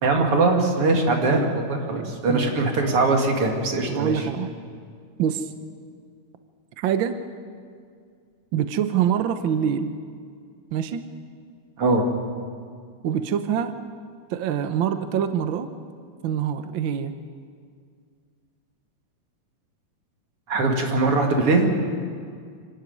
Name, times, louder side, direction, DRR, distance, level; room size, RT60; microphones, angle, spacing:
voice 1, 0.0-4.2 11.8-12.0 20.5-21.7, right 3 dB, 50° right, 2 dB, 3.1 m, -21 dB
voice 2, 1.9-2.5 3.9-4.5 5.2-5.5 6.8-7.2 8.5-10.0 10.7-11.1 13.0-13.8 14.3-15.7 16.2-17.1, right 8 dB, 85° right, 9 dB, 1.1 m, -25 dB
26.0 x 12.5 x 9.5 m, 2.1 s
omnidirectional pair, 3.5 m